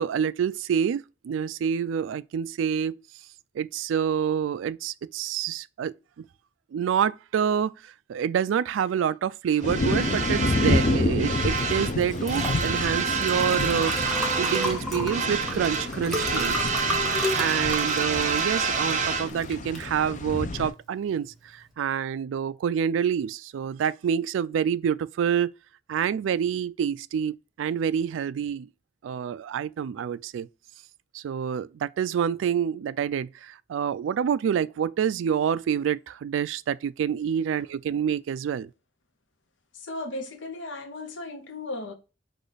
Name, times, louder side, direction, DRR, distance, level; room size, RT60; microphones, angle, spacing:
voice 1, 0.0-3.0 3.5-6.3 6.7-16.7 17.4-25.5 25.9-28.7 29.0-30.5 31.1-38.7, right 8 dB, 90° right, 0.3 m, -27 dB
sound 1, 9.6-20.7, left 2 dB, 40° left, 0.5 m, -29 dB
sound 2, 9.6-12.0 12.2-14.8 15.1-19.3, right 5 dB, 40° right, 0.6 m, -28 dB
Liquid, 11.5-21.7, left 1 dB, ahead, 0.8 m, -35 dB
voice 2, 39.7-41.9, left 2 dB, 80° left, 1.0 m, -36 dB
4.9 x 2.4 x 4.0 m
head